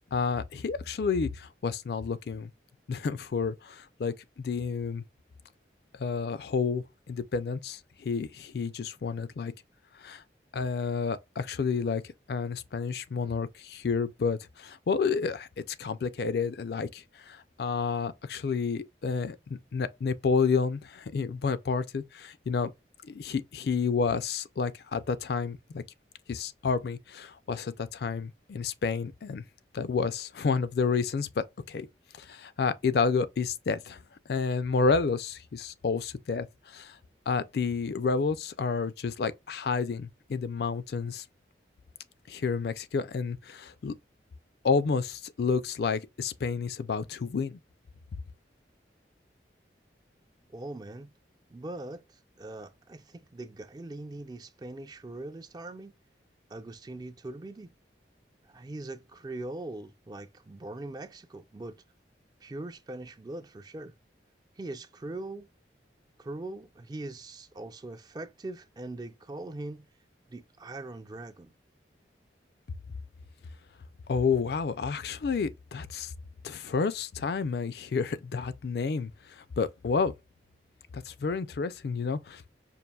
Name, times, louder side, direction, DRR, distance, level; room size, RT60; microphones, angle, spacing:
voice 1, 0.1-2.5 2.9-5.0 6.0-9.5 10.0-10.2 10.5-12.0 12.3-22.7 23.0-25.8 26.3-29.4 29.7-31.9 32.2-34.0 34.3-37.0 37.3-41.2 42.3-43.9 44.6-47.6 74.1-76.1 76.4-80.1 80.9-82.5, left 5 dB, 60° left, 0.4 m, -30 dB
voice 2, 50.5-51.1 51.5-55.9 56.5-57.7 58.4-61.8 62.4-63.9 64.6-65.5 66.2-69.8 70.3-71.5, right 2 dB, 20° right, 0.3 m, -41 dB
5.3 x 2.5 x 2.2 m
head